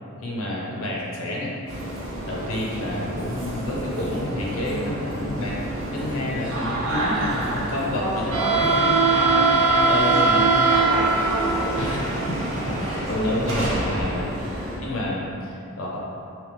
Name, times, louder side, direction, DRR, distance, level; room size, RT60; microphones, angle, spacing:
voice 1, 0.2-1.5 2.2-5.6 5.9-10.5 11.6-14.3 14.8-16.0, left 1 dB, 70° left, -4 dB, 0.7 m, -29 dB
sound 1, 1.7-14.8, right 3 dB, 60° right, 0.7 m, -24 dB
voice 2, 4.6-4.9 5.8-6.3 8.0-9.6 10.5-12.0 12.8-12.9, equal, ahead, -7 dB, 0.3 m, -32 dB
3.2 x 2.9 x 3.3 m, 2.6 s
head